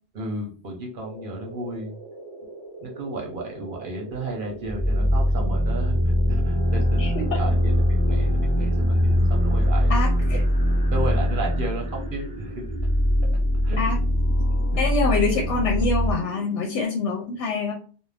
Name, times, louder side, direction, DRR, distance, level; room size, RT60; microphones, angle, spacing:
voice 1, 0.1-1.9 2.8-10.0 10.9-12.7 13.6-13.8 14.7-14.8, right 2 dB, 55° right, 0 dB, 0.7 m, -33 dB
sound 1, 1.0-16.9, right 1 dB, 5° right, 0.8 m, -41 dB
sound 2, 4.6-16.1, equal, 35° left, 0.8 m, -22 dB
voice 2, 9.9-10.4 13.8-14.0 14.8-17.7, left 3 dB, 80° left, 1 dB, 0.9 m, -25 dB
2.5 x 2.0 x 3.3 m, 0.39 s
omnidirectional pair, 1.2 m